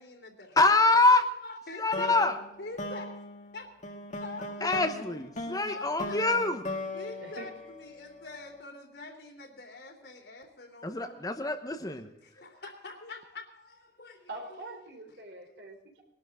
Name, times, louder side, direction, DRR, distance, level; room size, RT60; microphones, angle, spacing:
voice 1, 0.0-0.8 1.4-2.3 2.6-3.1 3.5-3.7 4.2-5.3 5.6-6.4 6.9-11.7 12.0-14.3 15.5-15.6, left 3 dB, 65° left, 3 dB, 3.2 m, -45 dB
voice 2, 0.6-1.2 1.8-2.4 4.6-6.6 10.8-12.1, left 3 dB, 20° left, 6 dB, 1.0 m, -25 dB
sound 1, 1.9-8.3, left 2 dB, 45° left, 1.8 m, -39 dB
voice 3, 7.2-7.5 14.3-16.0, right 2 dB, 75° right, 4 dB, 3.7 m, -44 dB
21.0 x 12.0 x 3.7 m, 0.85 s
head